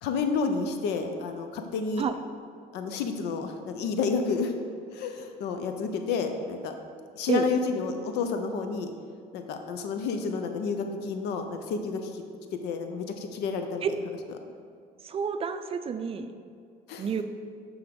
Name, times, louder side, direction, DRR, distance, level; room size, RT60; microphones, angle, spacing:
voice 1, 0.0-2.1 2.7-4.5 4.9-6.7 7.2-8.9 9.3-12.2 12.5-13.8 16.9-17.1, left 5 dB, 85° left, 6 dB, 0.6 m, -30 dB
voice 2, 15.0-16.3 17.0-17.2, right 6 dB, 35° right, 9 dB, 0.4 m, -29 dB
9.3 x 3.6 x 5.1 m, 2.2 s
cardioid pair, 110°, 17 cm